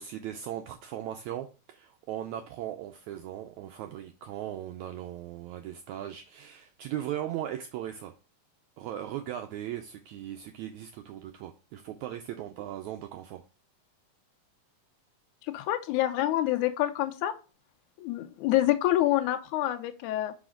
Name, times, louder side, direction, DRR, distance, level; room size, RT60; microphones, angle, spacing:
voice 1, 0.0-8.1 8.8-13.4, right 11 dB, 85° right, 6 dB, 1.7 m, -38 dB
voice 2, 15.5-17.4 18.0-20.3, left 14 dB, 85° left, 8 dB, 1.8 m, -27 dB
6.2 x 5.0 x 3.7 m, 0.34 s
omnidirectional pair, 3.9 m